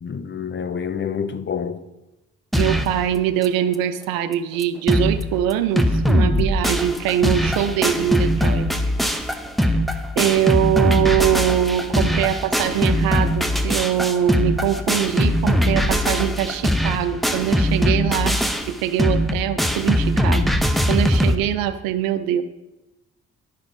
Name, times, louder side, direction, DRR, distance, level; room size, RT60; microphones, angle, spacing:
voice 1, 0.0-1.8, left 7 dB, 35° left, 0.6 m, -28 dB
sound 1, 2.5-3.0 3.4-3.5 3.7-3.8 4.3-4.4 4.6-5.2 5.5-21.4, equal, ahead, 0.7 m, -21 dB
voice 2, 2.5-8.7 10.2-18.4 18.7-20.5 20.9-22.4, right 11 dB, 85° right, 0.6 m, -22 dB
11.5 x 4.1 x 5.1 m
hypercardioid pair, 45°, 34 cm